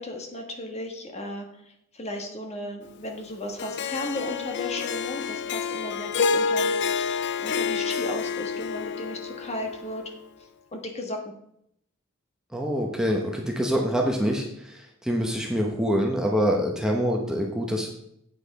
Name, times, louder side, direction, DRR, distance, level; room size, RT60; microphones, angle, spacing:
voice 1, 0.0-1.5 1.9-10.0 10.7-11.2, left 1 dB, 30° left, 3 dB, 1.4 m, -35 dB
Harp, 3.6-10.0, left 5 dB, 55° left, 0.5 m, -28 dB
voice 2, 12.5-17.9, equal, 5° right, 0 dB, 1.0 m, -25 dB
8.7 x 6.2 x 4.8 m, 0.74 s
head